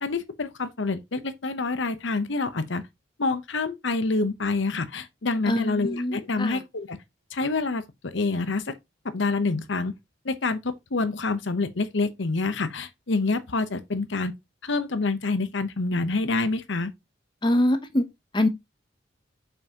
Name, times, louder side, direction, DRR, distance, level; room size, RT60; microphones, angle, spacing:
voice 1, 0.0-2.8 3.2-7.0 7.3-8.7 9.0-9.9 10.2-14.3 14.6-16.9, left 3 dB, 70° left, 0.8 m, -27 dB
voice 2, 5.5-6.6 17.4-18.0 18.3-18.5, left 1 dB, 25° left, 0.7 m, -24 dB
7.1 x 5.4 x 2.9 m
head